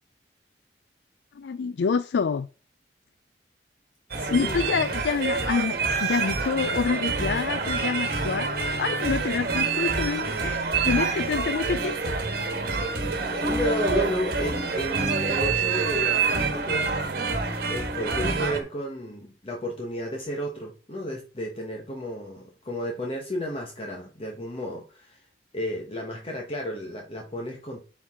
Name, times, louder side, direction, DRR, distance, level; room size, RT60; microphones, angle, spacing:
voice 1, 1.4-2.5 4.3-12.1, left 5 dB, 65° left, 0.4 m, -27 dB
voice 2, 4.1-4.6 13.2-17.4 17.7-25.2 25.5-27.8, equal, 30° left, 1.1 m, -32 dB
sound 1, 4.1-18.6, right 4 dB, 55° right, 1.4 m, -27 dB
9.9 x 4.7 x 3.6 m
head